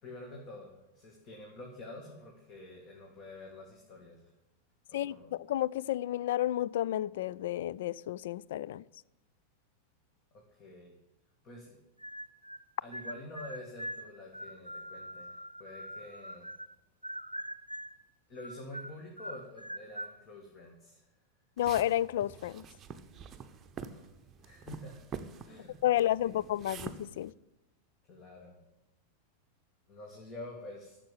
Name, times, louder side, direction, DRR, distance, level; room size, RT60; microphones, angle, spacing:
voice 1, 0.0-4.3 4.9-5.3 10.3-10.9 11.4-11.8 12.8-16.5 18.3-21.0 23.8-24.1 24.4-25.0 25.4-26.5 28.1-28.6 29.9-31.0, left 2 dB, 35° left, 2.4 m, -48 dB
voice 2, 4.9-8.8 21.6-22.6 25.8-27.3, left 13 dB, 55° left, 0.3 m, -31 dB
sound 1, 12.0-12.6 12.9-16.7 17.0-18.0 18.4-20.2, equal, 90° right, 0.6 m, -43 dB
sound 2, 21.6-27.3, right 5 dB, 25° right, 0.9 m, -46 dB
12.0 x 7.3 x 9.1 m
figure-of-eight pair, 90°, 0 cm